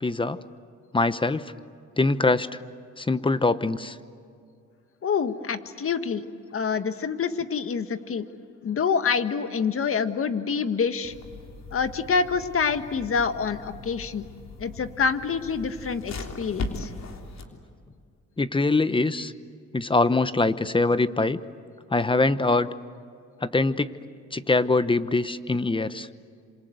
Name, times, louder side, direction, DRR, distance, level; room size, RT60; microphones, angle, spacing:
voice 1, 0.0-0.4 0.9-1.4 2.0-2.5 3.0-4.0 18.4-19.3 19.7-21.4 21.9-22.7 23.4-23.9 24.3-26.1, left 3 dB, 15° left, 13 dB, 1.0 m, -23 dB
voice 2, 5.0-6.3 6.5-8.3 8.6-11.1 11.7-14.3 14.6-16.9, left 6 dB, 45° left, 9 dB, 1.6 m, -26 dB
sound 1, 11.0-17.4, left 3 dB, 60° left, 3.5 m, -39 dB
28.0 x 27.0 x 8.0 m, 2.4 s
cardioid pair, 90°, 30 cm